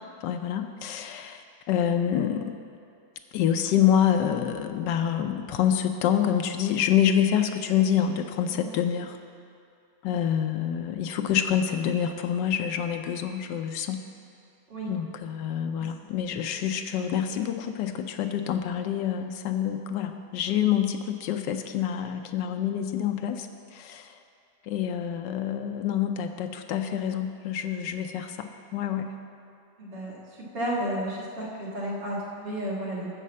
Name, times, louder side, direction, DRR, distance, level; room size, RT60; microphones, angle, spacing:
voice 1, 0.2-1.4 1.7-2.6 3.3-9.2 10.0-14.0 14.9-23.5 23.7-24.1 24.7-29.1, left 9 dB, 85° left, 6 dB, 1.3 m, -27 dB
voice 2, 29.8-33.1, right 1 dB, 90° right, -6 dB, 2.8 m, -33 dB
12.0 x 4.2 x 7.5 m, 2.5 s
omnidirectional pair, 1.9 m